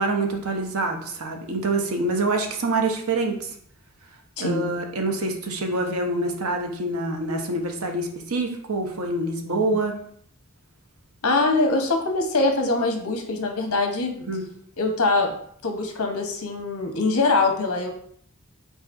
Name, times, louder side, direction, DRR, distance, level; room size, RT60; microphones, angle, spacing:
voice 1, 0.0-3.5 4.4-10.0 14.2-14.4, right 2 dB, 75° right, 4 dB, 0.7 m, -26 dB
voice 2, 4.4-4.7 11.2-14.1 14.8-15.3 15.6-17.9, left 3 dB, 80° left, 3 dB, 0.8 m, -23 dB
4.8 x 3.9 x 2.6 m, 0.64 s
head